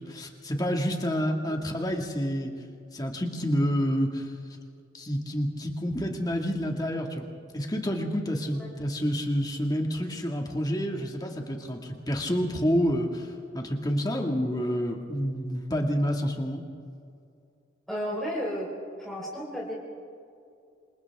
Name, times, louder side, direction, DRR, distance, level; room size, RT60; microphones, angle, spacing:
voice 1, 0.0-2.5 2.9-4.3 4.9-7.3 7.5-16.6, equal, 20° left, 2 dB, 2.1 m, -28 dB
voice 2, 17.9-18.7 19.0-19.7, equal, ahead, -6 dB, 4.5 m, -33 dB
27.5 x 26.5 x 3.6 m, 2.5 s
head